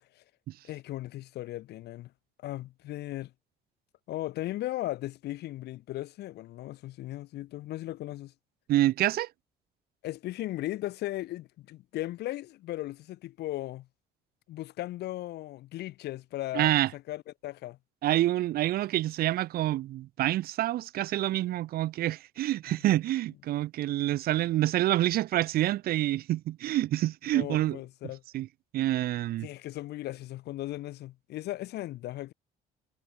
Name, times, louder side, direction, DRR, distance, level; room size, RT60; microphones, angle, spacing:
voice 1, 0.6-2.1 2.4-3.3 4.1-8.3 10.0-13.9 14.5-17.8 22.7-22.8 27.3-28.2 29.4-32.3, left 15 dB, 75° left, 4.3 m, -37 dB
voice 2, 8.7-9.3 16.5-16.9 18.0-27.8 28.3-28.5 28.7-29.5, right 14 dB, 65° right, 0.6 m, -27 dB
cardioid pair, 110°, 17 cm